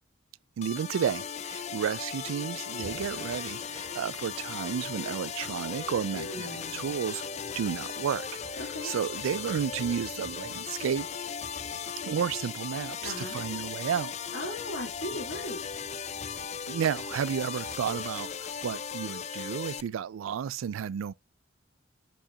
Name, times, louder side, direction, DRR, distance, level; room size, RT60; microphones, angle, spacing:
sound 1, 0.6-19.8, left 7 dB, 35° left, 0.3 m, -37 dB
voice 1, 0.6-7.3 7.6-11.1 12.0-14.1 16.7-21.1, right 8 dB, 85° right, 0.3 m, -32 dB
Thunder / Rain, 2.7-18.9, right 1 dB, 50° right, 2.4 m, -51 dB
voice 2, 6.1-7.0 8.6-8.9 13.0-13.4 14.3-15.6, left 1 dB, 75° left, 1.9 m, -38 dB
8.5 x 5.6 x 2.3 m
head